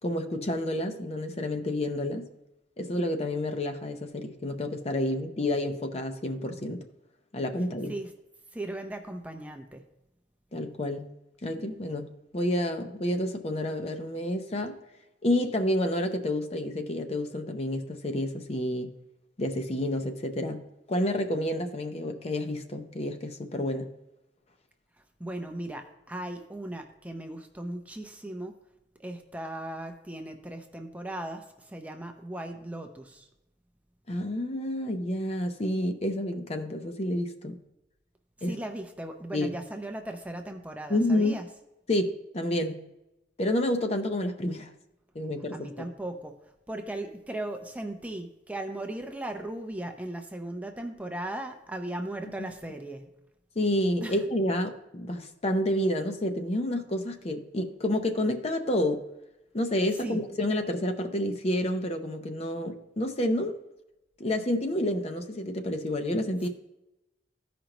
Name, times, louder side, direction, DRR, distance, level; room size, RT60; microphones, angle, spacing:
voice 1, 0.0-2.3 2.8-6.8 7.3-7.9 10.5-11.1 11.4-14.8 15.2-18.9 19.4-23.9 34.1-37.6 38.4-38.6 39.3-39.5 40.9-41.4 41.9-42.8 43.4-44.7 45.1-45.9 53.6-59.0 59.5-63.6 64.2-66.5, left 1 dB, 35° left, 6 dB, 0.6 m, -29 dB
voice 2, 8.5-9.8 25.2-28.5 29.0-33.3 38.4-41.4 45.5-53.1 54.0-54.2 60.0-60.2, right 1 dB, 10° right, 5 dB, 0.5 m, -37 dB
14.0 x 5.1 x 3.0 m, 0.94 s
head